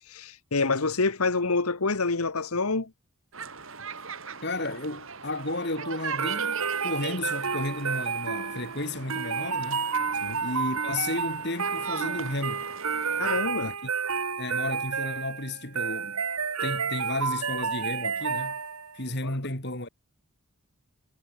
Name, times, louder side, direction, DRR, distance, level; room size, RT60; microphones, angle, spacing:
voice 1, 0.1-2.9 10.2-10.4 13.2-13.7 19.2-19.3, left 3 dB, 80° left, 1.5 m, -27 dB
sound 1, 3.3-13.4, right 5 dB, 65° right, 3.1 m, -39 dB
voice 2, 4.4-9.9 10.4-12.7 13.6-13.9 14.4-16.2 16.6-18.6 18.9-19.9, left 2 dB, 50° left, 5.2 m, -33 dB
sound 2, 6.2-19.0, right 6 dB, 80° right, 2.6 m, -30 dB
head